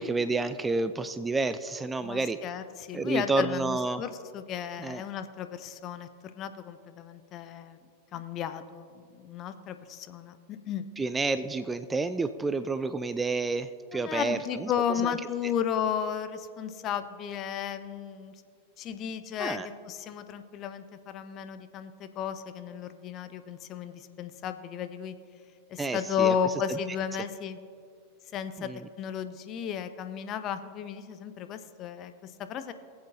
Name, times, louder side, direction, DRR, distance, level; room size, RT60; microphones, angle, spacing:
voice 1, 0.0-2.4 2.9-4.0 4.8-5.0 11.0-15.1 19.4-19.7 25.8-26.3 26.7-26.8 28.6-28.9, right 3 dB, 10° right, 12 dB, 0.3 m, -30 dB
voice 2, 2.0-7.8 8.1-10.9 13.9-18.4 18.8-19.6 19.9-25.1 25.7-27.6 28.3-28.7 29.0-32.7, left 8 dB, 35° left, 10 dB, 0.6 m, -34 dB
21.0 x 7.8 x 2.7 m, 2.3 s
figure-of-eight pair, 90°, 0 cm